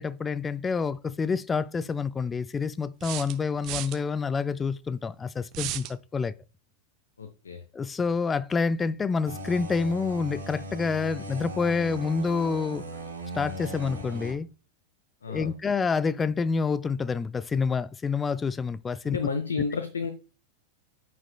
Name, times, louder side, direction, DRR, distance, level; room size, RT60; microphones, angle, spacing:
voice 1, 0.0-6.3 7.7-12.8 13.3-14.5 15.3-19.2, left 5 dB, 15° left, 0.4 m, -28 dB
sound 1, 0.9-1.0 3.0-4.0 5.5-6.0, right 14 dB, 40° right, 0.6 m, -34 dB
voice 2, 7.2-7.6 15.2-15.6 19.0-20.1, left 4 dB, 70° left, 0.7 m, -31 dB
sound 2, 9.2-14.3, equal, 80° right, 2.6 m, -38 dB
9.2 x 6.0 x 2.3 m
figure-of-eight pair, 90°, 0 cm